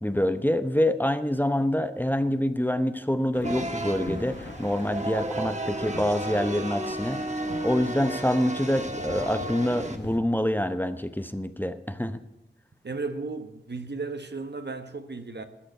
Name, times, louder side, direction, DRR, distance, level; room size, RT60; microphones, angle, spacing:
voice 1, 0.0-7.3 7.6-12.2, left 1 dB, 10° left, 0.8 m, -26 dB
sound 1, 3.3-10.2, left 2 dB, 70° left, 1.5 m, -42 dB
sound 2, 3.4-10.0, right 1 dB, 40° right, 1.4 m, -33 dB
voice 2, 12.8-15.4, right 3 dB, 65° right, 1.2 m, -34 dB
13.5 x 6.7 x 8.9 m
wide cardioid pair, 45°, 19 cm